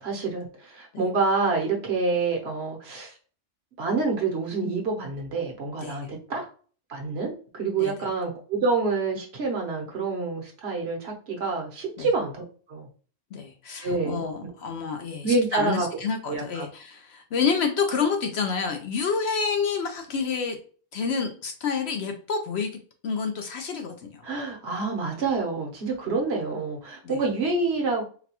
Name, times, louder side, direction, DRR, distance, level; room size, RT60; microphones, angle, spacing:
voice 1, 0.0-3.1 3.8-6.5 6.9-12.4 12.7-12.9 13.8-14.5 15.2-15.9 16.3-16.7 24.2-28.0, right 3 dB, 60° right, 1 dB, 1.0 m, -27 dB
voice 2, 13.3-20.6 20.9-22.7 23.0-24.3 27.0-27.2, left 5 dB, 65° left, 5 dB, 0.7 m, -28 dB
3.9 x 2.2 x 2.8 m, 0.41 s
omnidirectional pair, 1.3 m